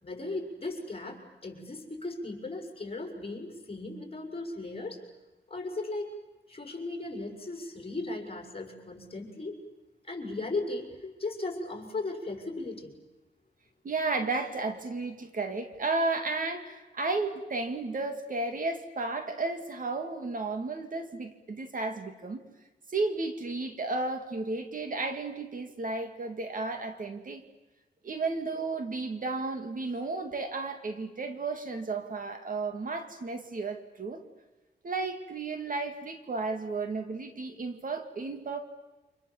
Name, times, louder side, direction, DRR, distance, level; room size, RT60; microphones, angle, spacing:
voice 1, 0.0-5.0 5.5-6.1 6.5-9.6 10.1-13.0, left 2 dB, 30° left, 2 dB, 6.2 m, -37 dB
voice 2, 13.8-22.4 22.9-27.4 28.0-34.2 34.8-38.6, right 3 dB, 45° right, 6 dB, 2.4 m, -33 dB
29.5 x 27.0 x 7.4 m, 1.1 s
wide cardioid pair, 120°, 19 cm